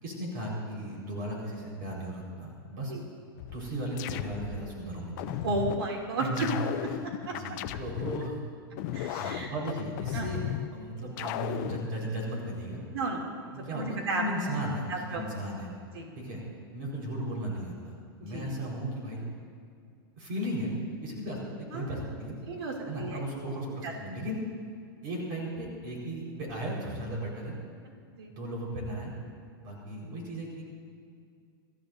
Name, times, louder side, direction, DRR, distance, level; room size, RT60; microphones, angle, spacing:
voice 1, 0.0-2.9 3.5-5.4 6.2-6.5 7.3-8.4 9.2-10.4 10.7-12.8 13.5-15.7 16.1-16.4 16.7-19.3 20.2-20.7 21.0-21.4 21.7-22.3 22.9-24.4 25.0-27.5 28.3-29.1 29.6-30.6, right 1 dB, 55° right, -3 dB, 4.6 m, -36 dB
sound 1, 3.4-4.7 5.2-5.9 6.4-8.3 8.8-10.7 11.2-11.9, left 13 dB, 45° left, 0.5 m, -35 dB
voice 2, 5.4-6.5 7.0-7.3 8.9-9.5 10.1-10.3 12.9-13.2 13.7-14.2 14.9-15.2 15.9-16.1 18.2-18.5 21.7-21.9 22.4-23.2 23.8-23.9 28.1-28.3, right 3 dB, 80° right, 0 dB, 2.7 m, -33 dB
25.0 x 14.0 x 2.7 m, 2.3 s
supercardioid pair, 145°, 13 cm